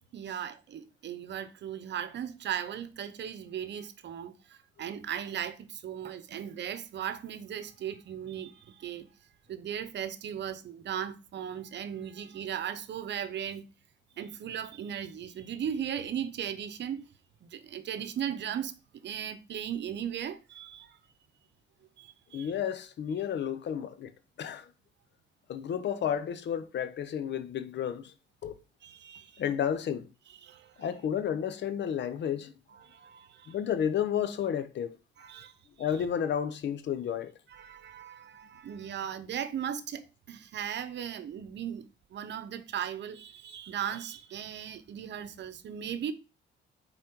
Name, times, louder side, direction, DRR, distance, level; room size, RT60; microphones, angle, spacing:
voice 1, 0.1-9.1 9.5-13.6 14.2-17.0 17.4-21.0 22.0-22.5 28.8-29.4 30.4-30.8 32.8-33.5 35.2-35.5 37.5-41.9 42.1-46.1, right 9 dB, 60° right, 0.8 m, -37 dB
voice 2, 22.3-24.1 24.4-24.7 25.5-28.1 28.4-28.6 29.4-30.1 30.8-32.5 33.5-35.0 35.8-37.3, left 8 dB, 65° left, 0.9 m, -31 dB
5.1 x 4.1 x 4.5 m
cardioid pair, 90°, 20 cm